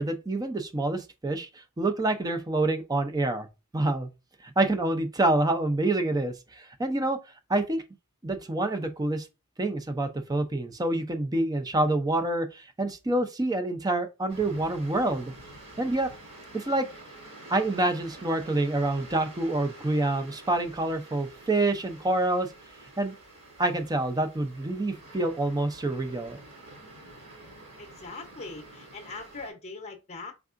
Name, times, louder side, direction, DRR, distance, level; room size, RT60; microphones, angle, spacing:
voice 1, 0.0-3.5 3.7-4.1 4.4-7.2 7.5-7.8 8.2-9.3 9.6-15.3 15.8-16.1 16.5-16.9 17.5-22.5 23.0-23.1 23.6-26.4, right 2 dB, 20° right, 0.5 m, -27 dB
sound 1, 14.3-29.5, right 2 dB, 60° right, 2.3 m, -48 dB
voice 2, 27.8-30.3, left 3 dB, 30° left, 0.7 m, -41 dB
4.6 x 3.5 x 2.4 m
head